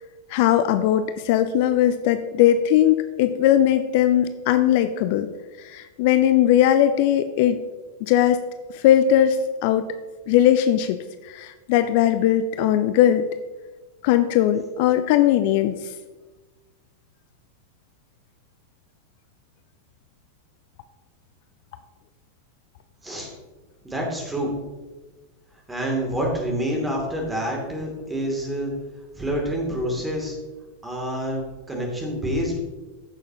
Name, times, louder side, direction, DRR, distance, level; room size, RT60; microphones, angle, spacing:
voice 1, 0.3-5.3 5.6-7.6 8.1-8.4 8.7-9.9 10.3-11.0 11.2-13.3 14.0-15.9, left 11 dB, 50° left, 10 dB, 0.4 m, -19 dB
voice 2, 23.8-24.5 25.7-28.7 29.1-30.4 30.8-32.6, equal, 10° right, -1 dB, 2.6 m, -27 dB
14.5 x 6.5 x 2.9 m, 1.2 s
figure-of-eight pair, 90°, 0 cm